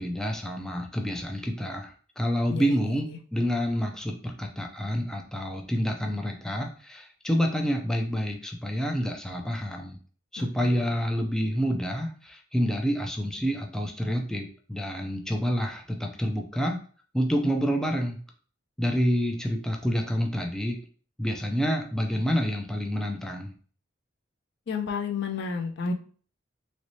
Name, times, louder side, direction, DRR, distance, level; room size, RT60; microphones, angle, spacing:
voice 1, 0.0-10.0 10.3-16.8 17.1-18.2 18.8-20.8 21.2-23.5, equal, 5° left, 2 dB, 0.4 m, -28 dB
voice 2, 10.4-10.8 24.7-25.9, left 5 dB, 60° left, 5 dB, 0.4 m, -31 dB
3.1 x 3.1 x 2.7 m, 0.43 s
head